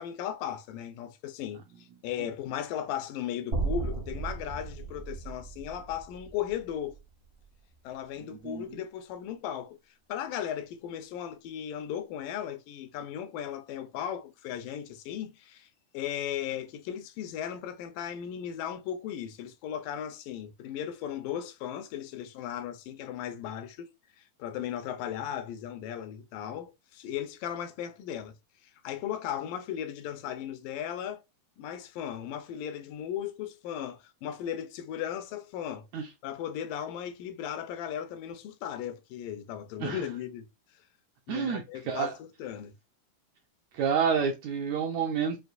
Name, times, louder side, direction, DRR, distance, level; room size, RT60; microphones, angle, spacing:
voice 1, 0.0-7.0 7.8-9.8 10.1-23.9 24.2-28.4 28.6-31.2 31.6-35.9 36.2-40.5 41.3-42.7, left 10 dB, 85° left, 2.4 m, -36 dB
sound 1, 3.5-7.7, right 3 dB, 60° right, 0.5 m, -36 dB
voice 2, 41.3-42.1 43.7-45.4, right 6 dB, 80° right, 1.6 m, -29 dB
6.3 x 2.6 x 2.3 m
omnidirectional pair, 3.8 m